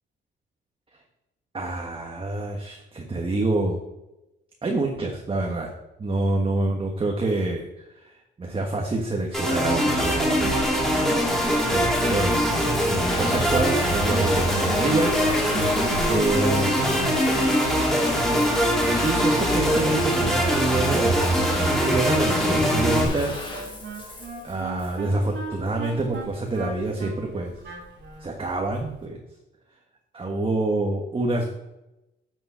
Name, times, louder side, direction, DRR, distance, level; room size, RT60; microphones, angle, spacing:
voice 1, 1.5-3.8 4.6-5.7 6.0-10.5 11.7-17.2 18.8-23.4 24.0-27.5 28.2-29.2 30.1-31.5, right 2 dB, 25° right, 1 dB, 1.4 m, -27 dB
sound 1, 9.3-23.0, equal, ahead, 3.1 m, -22 dB
Water tap faucet / Bathtub (filling or washing) / Trickle dribble, 10.1-29.0, left 2 dB, 25° left, 3.1 m, -36 dB
Wind instrument woodwind instrument, 23.1-28.4, right 5 dB, 65° right, 2.7 m, -38 dB
8.7 x 5.4 x 5.7 m, 0.93 s
cardioid pair, 90°, 20 cm